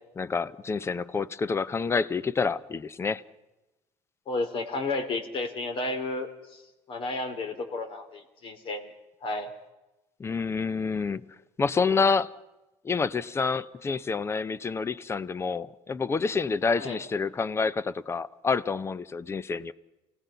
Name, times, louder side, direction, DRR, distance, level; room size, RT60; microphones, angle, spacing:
voice 1, 0.2-3.2 10.2-11.3 11.6-12.3 12.8-19.7, left 5 dB, 20° left, 0.7 m, -28 dB
voice 2, 4.3-6.6 6.9-8.9 9.2-9.5 16.8-17.0, left 2 dB, 45° left, 3.0 m, -32 dB
28.5 x 17.5 x 5.7 m
cardioid pair, 130°, 12 cm